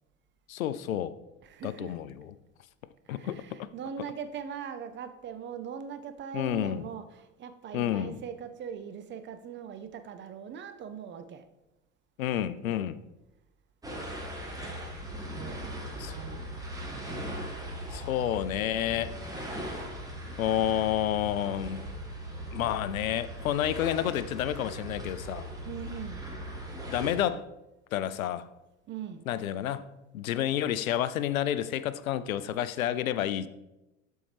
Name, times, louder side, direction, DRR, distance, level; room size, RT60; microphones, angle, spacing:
voice 1, 0.5-1.2 1.6-2.3 3.1-3.7 6.3-6.9 7.7-8.2 12.2-13.0 16.0-16.1 17.9-19.2 20.4-21.8 22.5-25.5 26.9-27.5 27.9-28.4 29.3-29.8 30.1-33.5, left 11 dB, 80° left, 0.5 m, -30 dB
voice 2, 1.4-2.0 3.1-11.5 15.3-16.5 25.6-26.2 28.9-29.3 32.3-32.7 33.2-33.5, right 7 dB, 30° right, 0.6 m, -41 dB
sound 1, 13.8-27.1, right 1 dB, 10° right, 1.7 m, -39 dB
11.5 x 4.4 x 3.3 m
hypercardioid pair, 85°, 41 cm